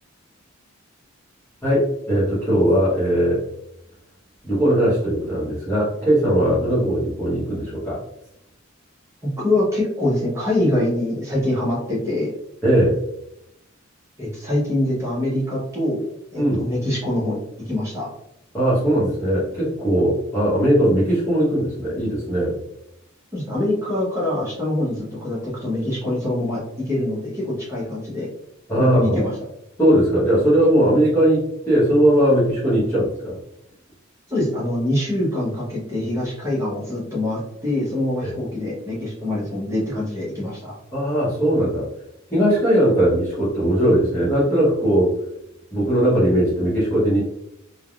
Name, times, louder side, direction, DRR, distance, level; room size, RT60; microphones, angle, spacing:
voice 1, 1.6-3.4 4.4-8.0 12.6-13.0 16.4-16.7 18.5-22.5 28.7-29.2 29.8-33.4 38.2-38.3 40.9-41.8 42.3-45.2 45.7-47.2, right 1 dB, 10° left, -11 dB, 0.9 m, -19 dB
voice 2, 9.2-12.3 14.2-16.0 16.3-18.1 23.3-28.3 28.8-29.3 34.3-40.7, left 1 dB, 15° right, -8 dB, 0.8 m, -24 dB
3.3 x 2.2 x 2.3 m, 0.80 s
head